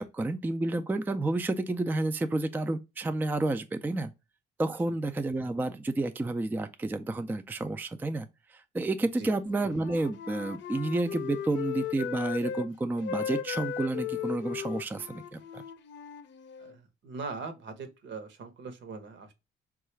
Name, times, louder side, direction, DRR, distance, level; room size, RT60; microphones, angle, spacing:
voice 1, 0.0-4.1 4.6-15.6, right 2 dB, 10° right, 0.3 m, -30 dB
Wind instrument woodwind instrument, 9.4-12.7 13.0-16.8, left 8 dB, 65° left, 0.6 m, -37 dB
voice 2, 16.6-19.3, right 4 dB, 70° right, 0.9 m, -41 dB
3.6 x 2.3 x 3.1 m
cardioid pair, 90°, 20 cm